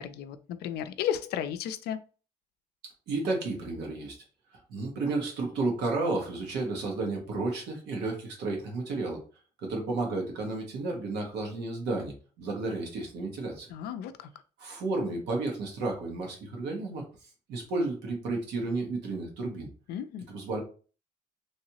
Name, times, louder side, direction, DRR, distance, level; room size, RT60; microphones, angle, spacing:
voice 1, 0.0-2.0 13.7-14.1 19.9-20.3, left 9 dB, 75° left, 0.4 m, -33 dB
voice 2, 2.8-4.2 4.7-9.2 9.6-13.7 14.6-17.1 17.5-19.7 20.3-20.6, right 3 dB, 85° right, 1.3 m, -32 dB
3.1 x 2.8 x 2.8 m
cardioid pair, 110°, 17 cm